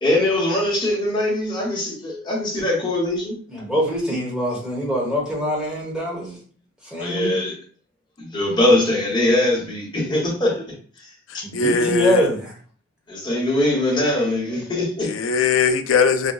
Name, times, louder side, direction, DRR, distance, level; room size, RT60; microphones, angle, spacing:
voice 1, 0.0-3.3 7.0-7.5 8.2-10.6 11.3-11.4 13.1-15.1, left 1 dB, 25° left, 1.0 m, -21 dB
voice 2, 3.5-6.4 6.8-7.4 11.4-12.5, equal, 5° right, 1.0 m, -24 dB
voice 3, 11.3-12.3 15.0-16.3, left 5 dB, 85° left, 0.4 m, -20 dB
4.1 x 2.2 x 2.2 m
head